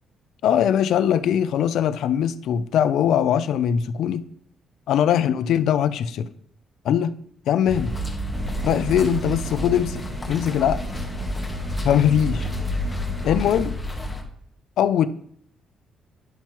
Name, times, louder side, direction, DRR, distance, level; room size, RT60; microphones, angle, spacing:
voice 1, 0.4-4.3 4.9-6.3 6.8-7.2 7.5-7.9 8.6-10.8 11.8-12.5 13.2-13.7 14.8-15.1, left 9 dB, 75° left, 0.4 m, -21 dB
sound 1, 7.7-14.2, left 1 dB, 15° left, 1.4 m, -30 dB
sound 2, 8.3-13.7, right 5 dB, 50° right, 2.2 m, -35 dB
10.5 x 5.7 x 3.0 m
cardioid pair, 90°, 0 cm